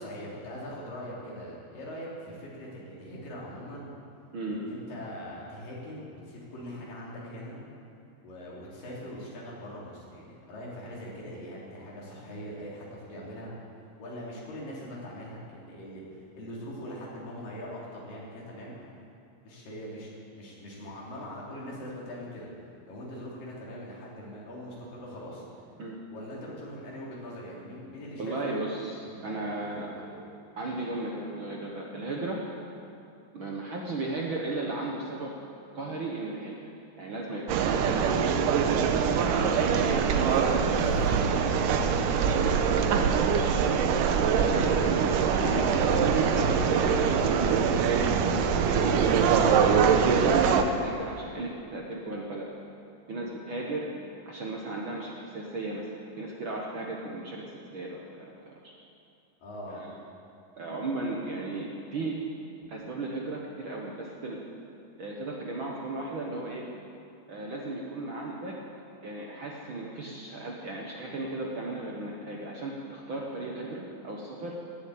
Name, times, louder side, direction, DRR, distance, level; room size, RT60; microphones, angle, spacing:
voice 1, 0.0-3.9 4.5-7.6 8.2-13.5 14.0-18.8 19.4-22.5 22.9-25.4 26.1-28.5 29.0-30.3 59.4-59.9, equal, 85° left, -5 dB, 4.9 m, -42 dB
voice 2, 4.3-4.7 25.8-26.0 28.2-29.9 30.6-32.4 33.3-35.3 35.7-36.6 37.0-38.2 39.3-40.5 41.0-43.5 44.4-45.0 45.4-52.5 53.1-53.9 54.2-55.9 56.2-58.7 59.7-59.9 60.6-62.2 62.7-64.4 65.0-66.7 67.3-68.5 69.0-74.5, right 2 dB, 55° right, -2 dB, 1.5 m, -36 dB
sound 1, 37.5-50.6, right 7 dB, 80° right, 2.4 m, -24 dB
sound 2, 38.2-49.7, left 2 dB, 30° left, 2.5 m, -38 dB
18.5 x 7.9 x 8.7 m, 2.6 s
omnidirectional pair, 3.8 m